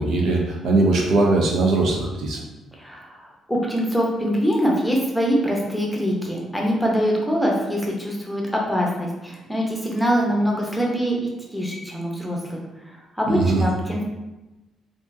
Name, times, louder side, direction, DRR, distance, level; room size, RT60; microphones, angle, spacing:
voice 1, 0.0-2.4 13.3-13.6, right 2 dB, 75° right, 0 dB, 0.6 m, -20 dB
voice 2, 2.8-12.6 12.9-14.0, equal, ahead, -2 dB, 0.8 m, -24 dB
3.5 x 2.5 x 2.6 m, 1.0 s
cardioid pair, 90°, 0 cm